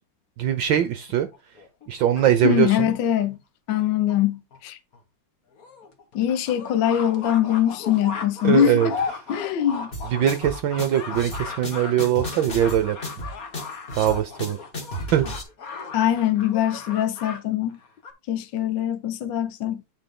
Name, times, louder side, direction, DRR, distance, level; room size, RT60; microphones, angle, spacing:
voice 1, 0.4-1.3 1.9-2.9 8.4-8.9 10.1-13.0 14.0-14.6 15.1-15.3, right 10 dB, 70° right, 1.3 m, -21 dB
sound 1, 1.3-2.9 3.7-3.8 4.1-4.2 4.5-4.6 4.9-5.0 5.6-17.4 17.7-18.1, left 5 dB, 45° left, 1.6 m, -36 dB
voice 2, 2.4-3.4 3.7-4.8 6.1-9.0 9.3-9.9 15.9-17.8 18.3-19.8, left 11 dB, 65° left, 1.3 m, -22 dB
sound 2, 9.9-15.4, left 1 dB, 30° left, 2.1 m, -34 dB
8.9 x 5.0 x 3.7 m
omnidirectional pair, 2.4 m